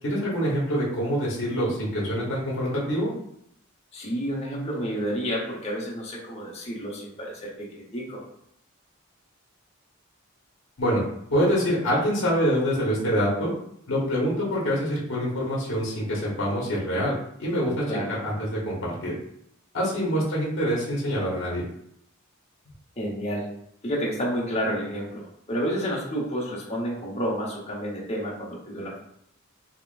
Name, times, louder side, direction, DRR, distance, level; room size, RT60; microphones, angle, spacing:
voice 1, 0.0-3.1 10.8-11.0 11.3-13.5 13.9-17.1 17.4-17.8 18.2-19.2 19.7-21.6, equal, 65° left, -5 dB, 1.3 m, -25 dB
voice 2, 3.9-8.2 17.9-18.1 23.0-23.5 23.8-29.0, equal, 30° left, -4 dB, 1.0 m, -30 dB
5.7 x 2.2 x 2.5 m, 0.73 s
head